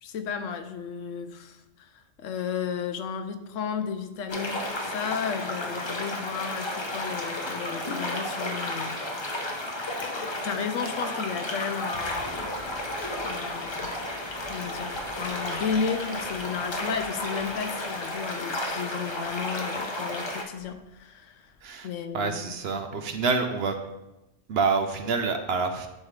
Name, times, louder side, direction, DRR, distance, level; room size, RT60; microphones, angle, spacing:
voice 1, 0.0-1.9 2.2-9.3 9.9-12.5 13.2-13.9 14.5-21.5 21.8-22.5, left 7 dB, 85° left, 9 dB, 1.0 m, -33 dB
sound 1, 4.3-20.4, left 1 dB, 30° left, 0.6 m, -33 dB
Train, 11.5-21.0 21.4-22.3 22.5-22.6, left 2 dB, 50° left, 1.2 m, -48 dB
voice 2, 22.1-23.8 24.5-25.9, right 4 dB, 65° right, 7 dB, 0.8 m, -27 dB
10.5 x 3.7 x 3.2 m, 0.94 s
omnidirectional pair, 1.3 m